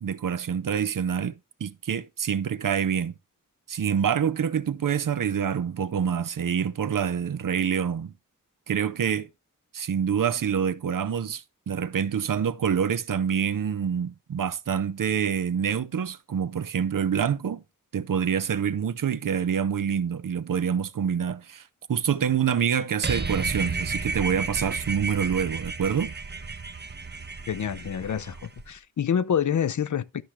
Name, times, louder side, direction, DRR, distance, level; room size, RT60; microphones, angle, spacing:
voice 1, 0.0-3.1 3.7-8.1 8.7-9.3 9.7-17.6 17.9-21.6 21.9-26.1, right 7 dB, 75° right, 0.6 m, -26 dB
sound 1, 23.0-28.6, right 4 dB, 30° right, 0.7 m, -32 dB
voice 2, 27.5-30.2, left 8 dB, 60° left, 0.5 m, -27 dB
11.5 x 5.8 x 3.1 m
wide cardioid pair, 75°, 33 cm